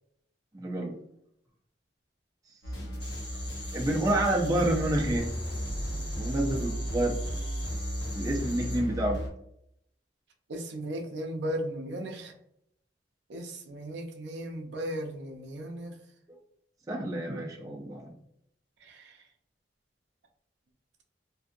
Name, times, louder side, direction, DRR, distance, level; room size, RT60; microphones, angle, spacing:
voice 1, 0.5-0.9 3.7-5.3 6.1-7.2 8.1-9.2 16.3-16.4 16.9-18.0, right 1 dB, 20° right, -1 dB, 0.5 m, -28 dB
sound 1, 2.6-9.3, equal, 70° left, 0.8 m, -34 dB
sound 2, 3.0-8.8, left 1 dB, 25° left, 1.1 m, -44 dB
voice 2, 10.5-12.3 13.3-15.9 18.9-19.0, right 1 dB, 70° right, 3 dB, 0.5 m, -36 dB
2.6 x 2.4 x 2.5 m, 0.72 s
head